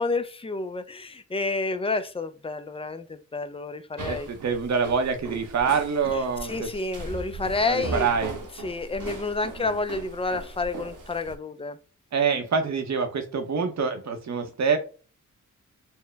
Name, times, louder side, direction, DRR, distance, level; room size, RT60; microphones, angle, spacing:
voice 1, 0.0-4.3 6.5-8.0 8.6-11.8, left 3 dB, 20° left, 0.3 m, -29 dB
voice 2, 4.0-6.7 7.6-8.4 9.6-9.7 12.1-14.8, right 5 dB, 60° right, 0.8 m, -26 dB
sound 1, 4.0-11.3, right 2 dB, 75° right, 1.1 m, -38 dB
4.4 x 2.1 x 3.3 m
wide cardioid pair, 130°, 31 cm